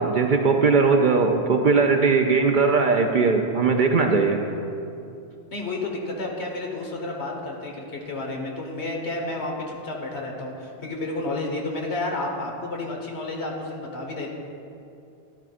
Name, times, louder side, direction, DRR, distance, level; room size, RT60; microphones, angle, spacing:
voice 1, 0.0-4.4, right 4 dB, 55° right, 4 dB, 0.6 m, -19 dB
voice 2, 5.5-14.3, left 2 dB, 70° left, 0 dB, 1.6 m, -31 dB
12.5 x 11.5 x 2.5 m, 2.6 s
omnidirectional pair, 1.2 m